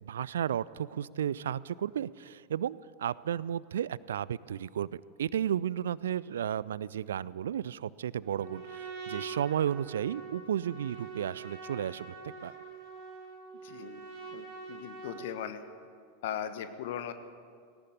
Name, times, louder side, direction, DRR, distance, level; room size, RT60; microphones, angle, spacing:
voice 1, 0.0-12.5, right 9 dB, 65° right, 21 dB, 0.4 m, -33 dB
Trumpet, 8.2-15.5, right 5 dB, 45° right, 4.0 m, -44 dB
voice 2, 13.6-14.0 14.3-15.6 16.2-17.1, left 9 dB, 55° left, 10 dB, 1.4 m, -38 dB
18.5 x 18.0 x 8.3 m, 2.2 s
figure-of-eight pair, 90°, 0 cm